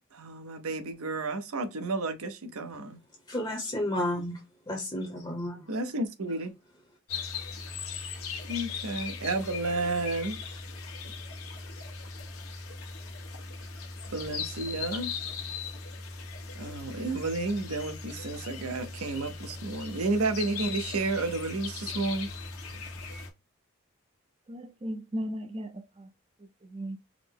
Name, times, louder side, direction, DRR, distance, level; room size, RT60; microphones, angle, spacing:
voice 1, 0.1-3.0 5.7-6.5 8.5-10.4 14.1-15.1 16.6-22.3, right 2 dB, 90° right, 0.7 m, -31 dB
voice 2, 3.3-5.7, left 1 dB, 20° left, 0.7 m, -32 dB
sound 1, 7.1-23.3, left 5 dB, 90° left, 1.0 m, -39 dB
voice 3, 24.5-26.1 26.4-27.0, equal, 25° right, 0.4 m, -37 dB
4.8 x 2.0 x 3.6 m
head